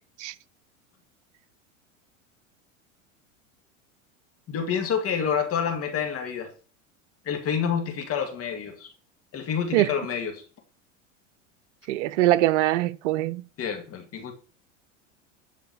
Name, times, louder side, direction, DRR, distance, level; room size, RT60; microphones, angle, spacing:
voice 1, 4.5-6.5 7.3-8.9 9.3-10.4 13.6-14.3, left 7 dB, 35° left, 2.2 m, -28 dB
voice 2, 11.9-13.4, right 15 dB, 65° right, 0.7 m, -22 dB
11.5 x 5.1 x 6.9 m
hypercardioid pair, 90°, 38 cm